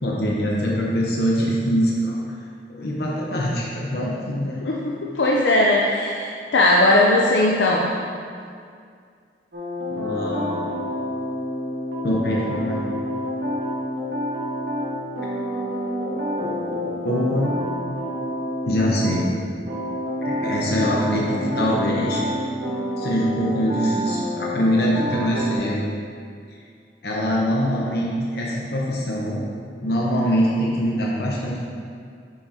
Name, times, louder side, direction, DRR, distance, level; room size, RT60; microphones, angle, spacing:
voice 1, 0.0-2.2 2.7-4.6 9.9-10.7 12.0-13.1 16.0-17.5 18.6-19.3 20.2-22.2 23.0-25.8 27.0-29.4 29.8-31.6, equal, 65° left, -4 dB, 0.9 m, -23 dB
voice 2, 4.6-7.9, left 1 dB, 90° left, -3 dB, 0.6 m, -19 dB
sound 1, 9.5-19.2 19.7-25.6, equal, 80° right, 1.2 m, -28 dB
8.9 x 6.0 x 2.8 m, 2.2 s
head